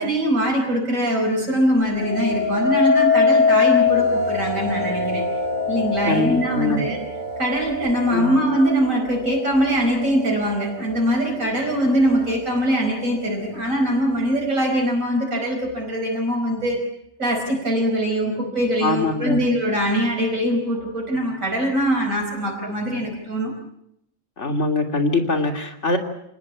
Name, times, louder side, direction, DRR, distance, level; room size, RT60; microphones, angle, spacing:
voice 1, 0.0-5.2 5.7-7.0 7.4-16.8 17.2-23.5, equal, 75° right, 1 dB, 5.4 m, -22 dB
sound 1, 1.9-11.0 11.6-12.0, left 4 dB, 40° right, 1.7 m, -23 dB
voice 2, 6.1-6.8 8.1-8.3 18.8-19.4 24.4-26.0, left 3 dB, 55° left, 4 dB, 3.2 m, -22 dB
28.5 x 19.0 x 8.6 m, 0.79 s
omnidirectional pair, 1.4 m